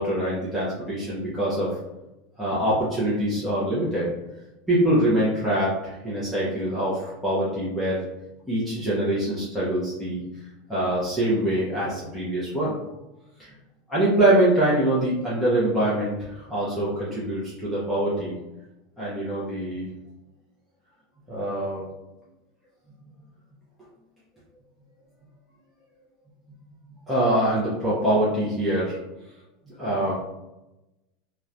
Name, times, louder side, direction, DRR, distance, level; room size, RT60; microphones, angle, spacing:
voice 1, 0.0-1.7 2.4-4.0 4.7-8.0 8.5-10.2 10.7-12.8 13.4-13.5 13.9-18.3 19.0-19.9 21.3-21.8 27.1-29.0 29.8-30.1, right 1 dB, ahead, -10 dB, 0.5 m, -24 dB
2.8 x 2.1 x 2.4 m, 0.95 s
supercardioid pair, 175°, 0 cm